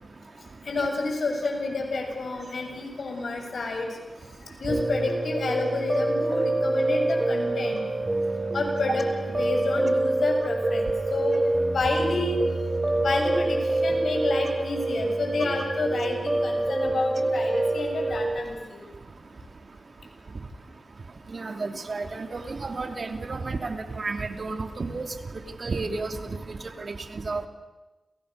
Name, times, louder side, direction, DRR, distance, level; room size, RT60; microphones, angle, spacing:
voice 1, 0.7-3.9 4.6-7.9 8.5-9.0 9.4-11.4 11.7-12.4 13.0-18.9, left 3 dB, 75° left, 3 dB, 7.0 m, -29 dB
Piano, 4.7-18.4, right 2 dB, 25° right, 4.1 m, -26 dB
voice 2, 21.3-25.1 25.6-27.5, right 3 dB, 60° right, 6 dB, 2.8 m, -32 dB
29.5 x 28.5 x 6.7 m, 1.1 s
cardioid pair, 60°, 0 cm